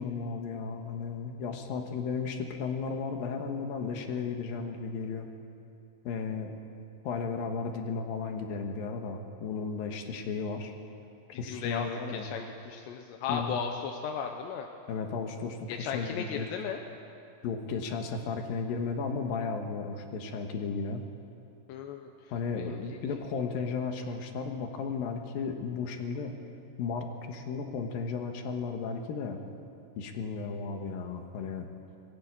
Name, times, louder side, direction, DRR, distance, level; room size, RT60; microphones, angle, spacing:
voice 1, 0.0-5.3 6.0-6.5 7.0-10.7 11.4-12.3 13.3-13.6 14.9-16.5 17.4-21.0 22.3-26.3 26.8-29.4 30.0-31.7, left 5 dB, 65° left, 5 dB, 2.8 m, -34 dB
voice 2, 11.5-14.7 15.7-16.8 21.7-23.0, left 7 dB, 85° left, 3 dB, 3.1 m, -36 dB
20.5 x 16.0 x 8.8 m, 2.6 s
omnidirectional pair, 4.9 m